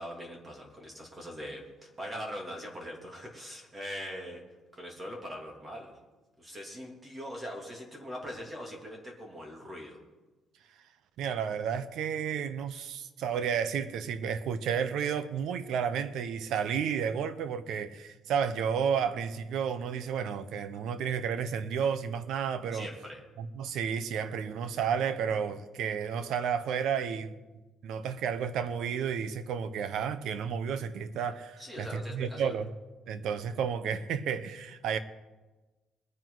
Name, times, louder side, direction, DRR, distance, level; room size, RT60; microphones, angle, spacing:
voice 1, 0.0-4.4 4.7-6.0 6.4-10.0 22.7-23.2 31.6-32.6, equal, 20° right, 3.0 m, -42 dB
voice 2, 11.2-22.9 23.4-27.3 27.8-32.7 33.1-35.0, right 7 dB, 70° right, 0.9 m, -32 dB
22.0 x 9.4 x 4.0 m
cardioid pair, 145°, 0 cm